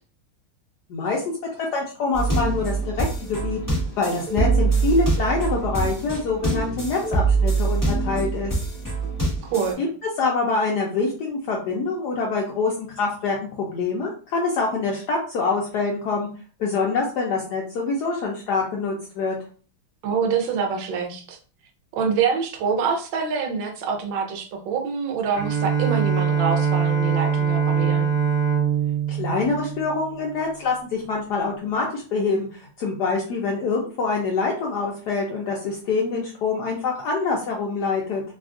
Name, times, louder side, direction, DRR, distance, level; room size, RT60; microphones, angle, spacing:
voice 1, 0.9-1.2 1.6-3.6 4.0-8.6 9.8-9.9 10.2-16.3 16.6-19.4 29.1-38.2, left 4 dB, 75° left, -1 dB, 0.9 m, -25 dB
sound 1, 2.1-9.7, right 3 dB, 15° left, 0.7 m, -24 dB
voice 2, 9.4-9.8 20.0-21.4 22.0-28.1, right 6 dB, 70° right, 3 dB, 1.3 m, -25 dB
Bowed string instrument, 25.3-30.6, right 6 dB, 55° right, 1.1 m, -23 dB
3.4 x 2.3 x 2.4 m, 0.40 s
omnidirectional pair, 2.3 m